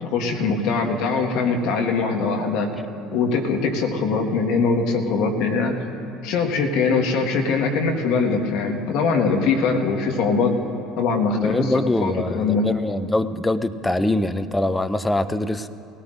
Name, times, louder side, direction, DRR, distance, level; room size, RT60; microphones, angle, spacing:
voice 1, 0.0-2.7 3.1-5.8 6.2-10.5 11.0-11.7 12.0-12.7, left 4 dB, 65° left, 2 dB, 1.5 m, -22 dB
voice 2, 11.4-15.7, left 1 dB, 10° left, 12 dB, 0.6 m, -23 dB
19.0 x 17.5 x 2.5 m, 2.8 s
hypercardioid pair, 65°, 0 cm